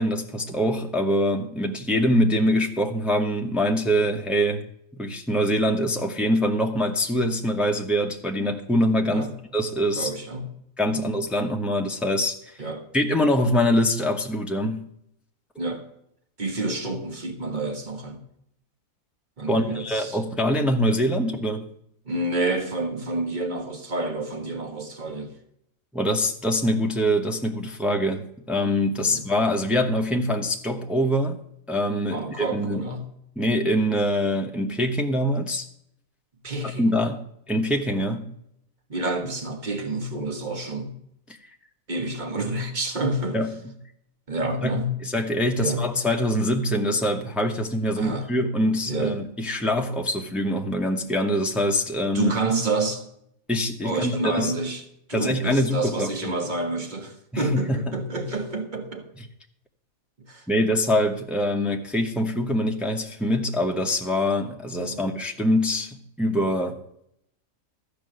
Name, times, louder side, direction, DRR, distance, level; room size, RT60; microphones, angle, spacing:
voice 1, 0.0-4.7 4.9-9.2 9.5-10.1 10.8-12.3 12.9-14.9 19.5-21.7 25.9-31.4 31.7-32.9 33.4-35.7 36.8-38.3 43.3-43.5 44.6-44.7 45.0-52.3 53.5-54.5 55.1-56.4 57.3-58.0 60.5-66.8, equal, ahead, 0.9 m, -24 dB
voice 2, 9.9-10.5 10.8-11.1 12.6-12.8 15.6-15.9 16.4-18.2 19.4-20.2 22.0-25.3 29.0-29.2 32.1-33.0 36.4-37.0 38.9-41.0 41.9-43.4 44.3-44.9 45.6-45.8 48.0-48.3 48.9-49.2 52.1-53.1 53.8-54.8 55.1-59.1 60.3-60.4 64.8-65.0, right 2 dB, 35° right, 1.6 m, -29 dB
14.5 x 5.2 x 7.8 m
omnidirectional pair, 1.5 m